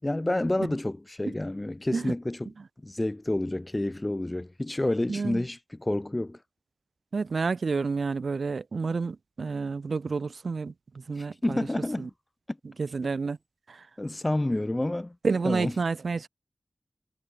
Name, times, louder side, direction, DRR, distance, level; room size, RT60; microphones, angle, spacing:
voice 1, 0.0-2.5 2.8-6.4 11.2-12.1 14.0-15.1 15.4-15.7, left 1 dB, 20° left, 6.4 m, -29 dB
voice 2, 5.1-5.4 7.1-10.7 11.1-11.6 12.0-12.1 12.8-13.4 13.7-13.8 15.2-16.3, right 4 dB, 75° right, 7.0 m, -29 dB
wide cardioid pair, 80°, 0 cm